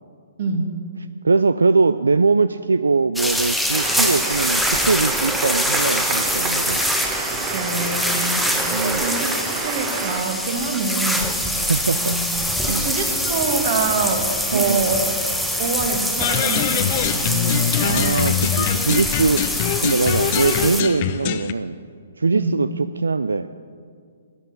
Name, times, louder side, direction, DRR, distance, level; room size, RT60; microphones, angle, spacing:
voice 1, 0.4-0.8 7.5-8.5 8.8-11.3 11.9-12.3 12.8-15.2 15.6-17.7 22.3-22.6, right 4 dB, 45° right, 4 dB, 1.8 m, -25 dB
voice 2, 1.2-6.8 8.7-9.1 11.6-12.2 12.6-12.9 14.5-15.0 17.8-21.8 22.2-23.6, right 4 dB, 85° right, 12 dB, 0.3 m, -21 dB
sound 1, 3.2-20.8, equal, ahead, 0.8 m, -24 dB
sound 2, 3.7-10.2, right 5 dB, 25° right, 1.1 m, -29 dB
sound 3, 16.2-21.5, left 11 dB, 40° left, 0.6 m, -23 dB
11.5 x 9.6 x 6.7 m, 2.2 s
hypercardioid pair, 135°, 0 cm